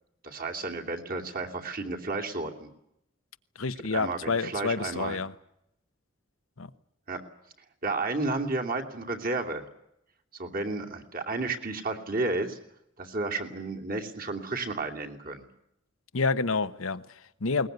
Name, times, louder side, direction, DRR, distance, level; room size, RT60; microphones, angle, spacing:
voice 1, 0.2-2.7 3.9-5.2 7.1-7.2 7.8-9.7 10.4-12.6 13.0-15.4, right 3 dB, 45° right, 2.8 m, -32 dB
voice 2, 3.5-5.3 6.6-6.7 16.1-17.7, left 4 dB, 90° left, 1.1 m, -29 dB
21.5 x 20.0 x 9.3 m
head